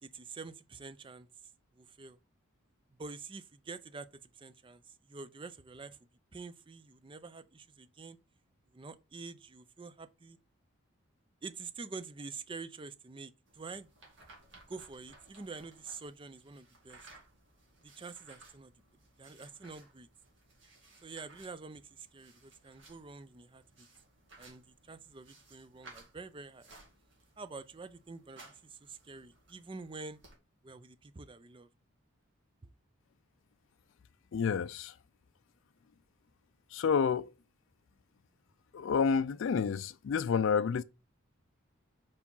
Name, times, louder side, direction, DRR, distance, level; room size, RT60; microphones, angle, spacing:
voice 1, 0.0-1.3 1.8-2.2 3.0-4.1 4.3-6.0 6.3-8.2 8.7-10.4 11.4-13.9 14.7-17.0 17.8-18.7 19.2-20.1 21.0-23.9 24.4-26.7 27.4-30.2 30.6-31.7, right 4 dB, 25° right, 0.4 m, -47 dB
sound 1, 13.5-30.4, right 2 dB, 60° right, 2.4 m, -60 dB
voice 2, 34.3-34.9 36.7-37.3 38.7-40.8, left 6 dB, 65° left, 0.3 m, -29 dB
4.9 x 4.8 x 5.3 m
head